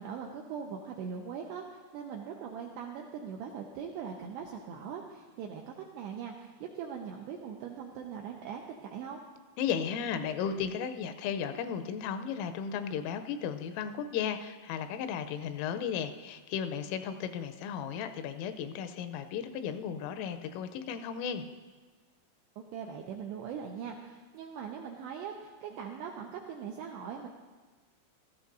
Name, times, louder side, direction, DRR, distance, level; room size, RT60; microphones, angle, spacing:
voice 1, 0.0-9.2 22.7-27.3, right 7 dB, 85° right, 1 dB, 2.4 m, -41 dB
voice 2, 9.6-21.4, left 7 dB, 85° left, 8 dB, 3.2 m, -35 dB
16.5 x 13.5 x 2.6 m, 1.3 s
omnidirectional pair, 5.7 m